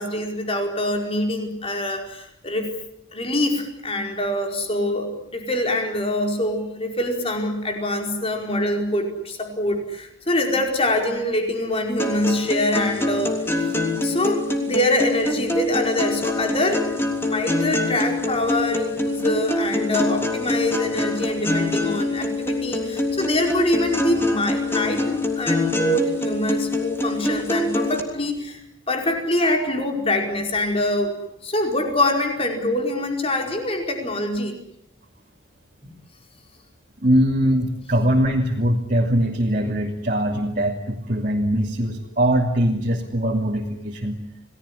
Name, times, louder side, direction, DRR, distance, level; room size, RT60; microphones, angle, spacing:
voice 1, 0.0-2.7 3.1-13.4 14.0-16.9 17.2-31.1 31.4-34.6, left 1 dB, 30° left, 3 dB, 4.9 m, -24 dB
sound 1, 12.0-28.0, left 2 dB, 10° left, 3.2 m, -25 dB
voice 2, 37.0-44.2, equal, 40° right, -1 dB, 3.0 m, -21 dB
29.0 x 19.0 x 10.0 m, 0.79 s
head